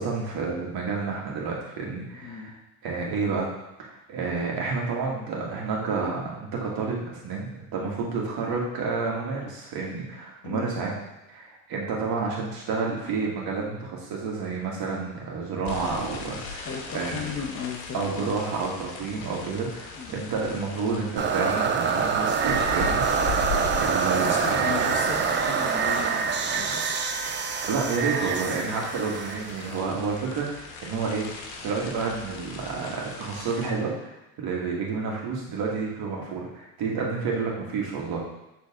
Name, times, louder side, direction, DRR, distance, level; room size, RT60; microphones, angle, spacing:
voice 1, 0.0-2.5 2.8-3.5 3.8-10.9 11.3-17.3 17.9-23.4 23.7-24.8 27.7-31.3 31.6-38.2, right 4 dB, 50° right, -2 dB, 2.1 m, -30 dB
voice 2, 2.2-2.5 10.4-10.7 16.6-18.3 20.0-20.2 24.1-27.0, left 6 dB, 30° left, 1 dB, 1.1 m, -35 dB
sound 1, 15.6-33.7, left 5 dB, 65° left, 1.3 m, -39 dB
sound 2, 21.2-30.2, right 6 dB, 25° right, 0.5 m, -26 dB
6.7 x 4.0 x 3.7 m, 0.93 s
supercardioid pair, 90°, 47 cm